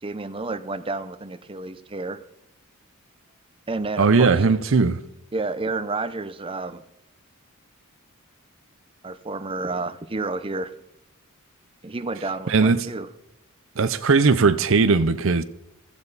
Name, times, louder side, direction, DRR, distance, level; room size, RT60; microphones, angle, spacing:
voice 1, 0.0-2.2 3.7-4.4 5.3-6.8 9.0-10.7 11.8-13.1, right 3 dB, 25° right, 0.7 m, -30 dB
voice 2, 4.0-5.0 12.5-12.9 13.8-15.4, right 4 dB, 65° right, 0.7 m, -18 dB
15.5 x 15.0 x 4.1 m
head